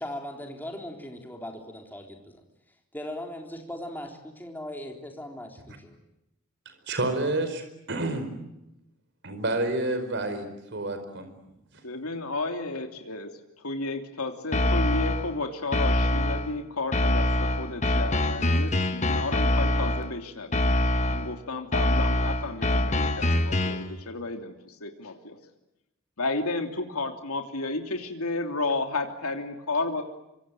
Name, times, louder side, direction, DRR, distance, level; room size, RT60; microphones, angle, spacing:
voice 1, 0.0-2.4 2.9-4.1 4.4-6.0, left 1 dB, 10° left, 2 dB, 3.8 m, -38 dB
voice 2, 6.6-8.3 9.2-11.3, right 2 dB, 55° right, 8 dB, 4.8 m, -29 dB
voice 3, 11.8-13.3 13.6-20.6 21.1-25.4 26.2-30.0, left 3 dB, 85° left, 5 dB, 3.1 m, -32 dB
sound 1, 14.5-15.3 15.7-16.5 16.9-20.1 20.5-21.3 21.7-23.9, left 1 dB, 30° left, 1.4 m, -24 dB
25.5 x 25.5 x 9.1 m, 0.89 s
head